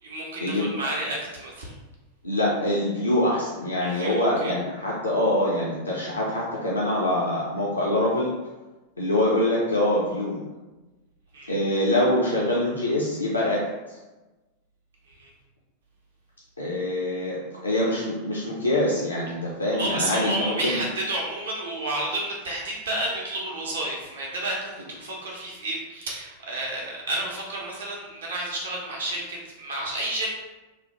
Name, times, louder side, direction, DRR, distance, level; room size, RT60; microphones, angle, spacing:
voice 1, 0.0-1.7 3.8-4.5 11.3-11.5 15.1-15.3 19.7-30.3, right 1 dB, 65° right, -3 dB, 0.6 m, -31 dB
voice 2, 2.2-8.3 9.0-10.4 11.5-13.6 13.9-14.0 16.6-20.8, left 1 dB, 80° left, -5 dB, 0.4 m, -24 dB
3.1 x 2.1 x 2.9 m, 1.1 s
figure-of-eight pair, 90°, 0 cm